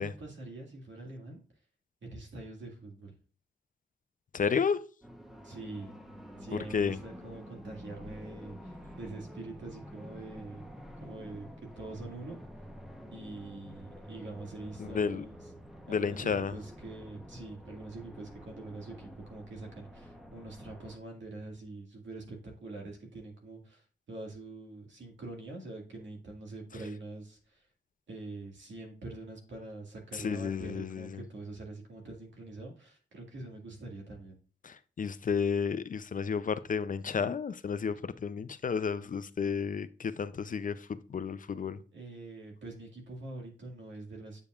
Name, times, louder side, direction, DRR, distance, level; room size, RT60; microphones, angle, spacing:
voice 1, 0.0-1.4 2.0-3.2 5.4-6.0 6.4-10.7 11.0-12.4 13.1-15.3 15.9-27.6 28.1-34.4 41.9-44.4, right 2 dB, 75° right, 2.0 m, -44 dB
voice 2, 4.3-4.8 6.7-7.0 14.8-15.2 15.9-16.5 30.1-31.2 34.6-41.8, left 6 dB, 45° left, 0.5 m, -32 dB
sound 1, 5.0-21.0, equal, ahead, 0.9 m, -48 dB
8.3 x 5.2 x 2.4 m
cardioid pair, 80°, 19 cm